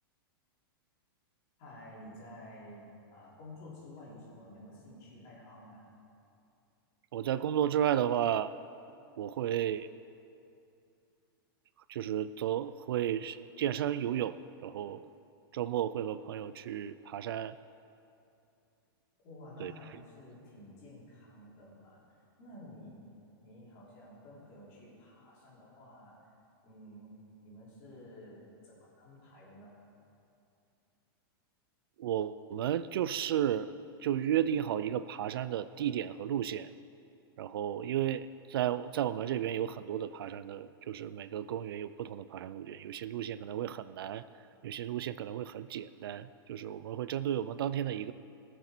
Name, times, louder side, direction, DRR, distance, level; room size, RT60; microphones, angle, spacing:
voice 1, 1.6-5.9 19.2-22.0 22.4-23.1 23.4-26.3 26.6-27.1 27.4-29.8, left 1 dB, 30° left, -7 dB, 3.4 m, -51 dB
voice 2, 7.1-8.5 9.2-9.9 11.9-15.1 15.5-17.6 19.6-19.7 32.0-33.7 34.0-36.7 37.4-44.2 44.6-48.1, right 10 dB, 70° right, 14 dB, 0.4 m, -33 dB
19.0 x 6.8 x 4.5 m, 2.6 s
supercardioid pair, 180°, 13 cm